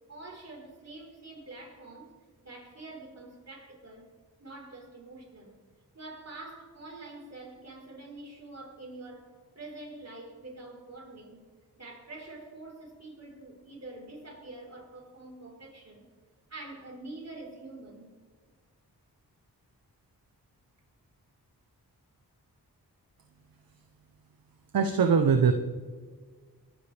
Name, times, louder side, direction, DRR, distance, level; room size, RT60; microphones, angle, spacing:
voice 1, 0.1-2.2 2.4-4.1 4.4-5.6 5.9-11.4 11.8-16.1 16.5-18.2, right 2 dB, 40° right, 4.5 m, -46 dB
voice 2, 24.7-25.5, right 6 dB, 65° right, 0.9 m, -22 dB
22.5 x 12.0 x 3.4 m
cardioid pair, 50°, 38 cm